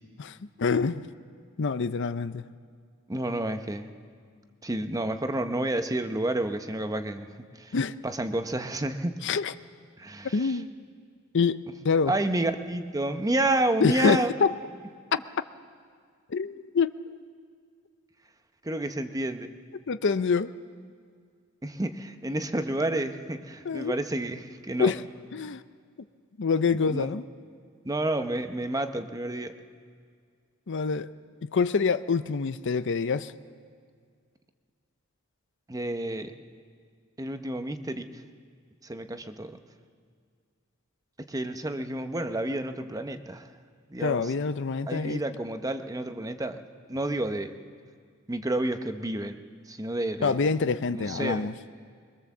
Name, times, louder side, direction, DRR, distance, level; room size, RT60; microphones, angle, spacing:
voice 1, 0.2-1.1 1.6-2.4 7.7-7.9 9.2-9.5 10.3-10.7 11.3-11.6 11.8-12.1 13.8-14.5 16.3-16.9 19.9-20.5 23.6-24.0 24.8-25.0 25.3-25.6 26.4-27.2 30.7-31.1 31.4-33.3 44.0-45.2 50.2-51.5, left 5 dB, 60° left, 13 dB, 0.6 m, -26 dB
voice 2, 3.1-3.9 4.6-7.3 7.5-7.7 8.0-9.2 10.0-10.6 12.1-14.3 18.6-19.5 21.6-24.9 26.9-27.1 27.8-29.5 35.7-36.3 37.2-38.1 38.8-39.6 41.3-43.5 43.9-44.3 44.9-46.6 46.9-47.5 48.3-49.4 49.7-50.4 50.9-51.4, right 1 dB, 15° right, 8 dB, 0.9 m, -30 dB
22.5 x 22.0 x 7.2 m, 2.1 s
head